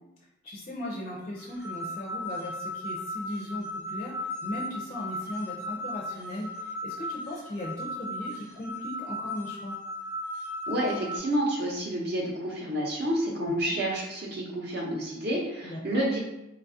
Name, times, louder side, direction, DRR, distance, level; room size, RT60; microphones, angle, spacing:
voice 1, 0.4-9.8 13.5-13.6 15.6-16.0, left 1 dB, 30° left, -4 dB, 0.4 m, -38 dB
sound 1, 1.4-11.2, left 1 dB, 20° right, 0.8 m, -36 dB
voice 2, 10.7-16.2, right 1 dB, 50° right, -3 dB, 0.7 m, -29 dB
3.9 x 2.3 x 2.7 m, 0.93 s
head